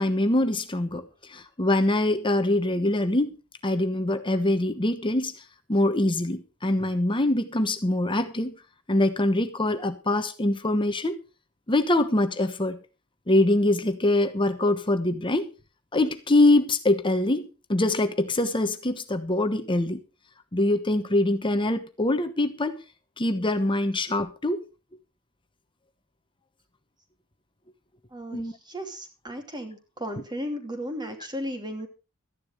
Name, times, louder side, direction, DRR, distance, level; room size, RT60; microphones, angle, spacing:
voice 1, 0.0-3.3 3.6-5.3 5.7-8.5 8.9-11.2 11.7-12.8 13.3-15.5 15.9-20.0 20.5-22.8 23.2-24.6 28.3-28.5, left 1 dB, 20° left, 8 dB, 1.1 m, -24 dB
voice 2, 28.1-31.9, equal, 20° right, 5 dB, 2.8 m, -35 dB
13.5 x 10.5 x 5.0 m, 0.32 s
head